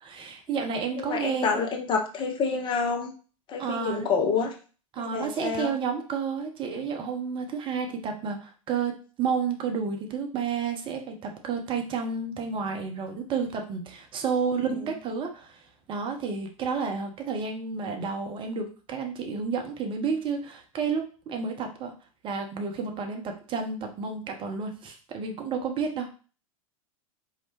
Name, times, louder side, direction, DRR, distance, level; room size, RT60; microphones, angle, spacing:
voice 1, 0.0-1.6 3.6-4.1 4.9-15.6 15.9-21.9 22.2-26.1, right 5 dB, 30° right, 4 dB, 0.7 m, -31 dB
voice 2, 1.0-3.1 3.5-4.5 5.0-5.7 14.6-14.8, left 5 dB, 25° left, 3 dB, 0.7 m, -28 dB
4.5 x 2.8 x 2.9 m, 0.38 s
figure-of-eight pair, 95°, 18 cm